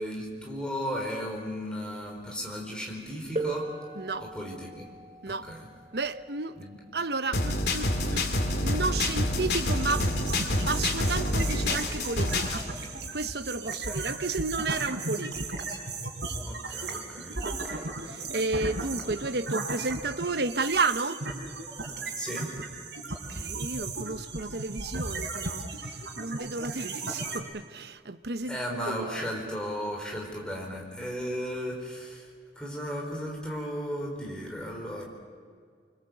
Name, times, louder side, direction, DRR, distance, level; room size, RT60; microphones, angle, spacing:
voice 1, 0.0-3.7 4.2-4.9 5.2-5.7 6.6-6.8 13.9-14.0 16.4-17.5 22.1-22.5 28.5-32.3 32.6-35.1, equal, 5° left, 4.6 m, -35 dB
sound 1, 3.4-8.8 9.8-9.9 10.8-11.0, right 2 dB, 35° right, 3.0 m, -40 dB
voice 2, 4.0-4.3 5.2-5.5 5.9-6.5 6.9-8.2 8.6-10.1 10.7-15.4 17.4-21.2 23.3-29.3, right 3 dB, 70° right, 1.0 m, -32 dB
sound 2, 7.3-12.6, left 1 dB, 70° left, 2.8 m, -27 dB
sound 3, 9.6-27.4, right 3 dB, 85° right, 4.0 m, -36 dB
25.0 x 25.0 x 8.0 m
head